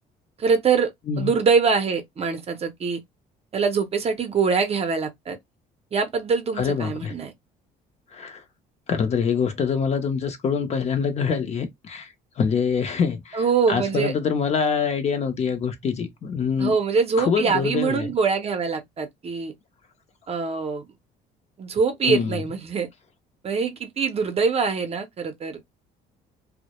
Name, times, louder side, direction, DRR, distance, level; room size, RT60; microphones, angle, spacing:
voice 1, 0.4-0.9 1.2-3.0 3.5-5.4 5.9-7.3 13.3-14.1 16.6-19.5 20.3-20.9 21.6-22.9 23.4-25.6, right 5 dB, 35° right, 0.6 m, -23 dB
voice 2, 6.6-7.1 8.1-8.4 8.9-13.4 13.7-16.8 17.2-18.1 22.0-22.4, left 6 dB, 40° left, 0.6 m, -25 dB
2.1 x 2.1 x 2.8 m
cardioid pair, 110°, 17 cm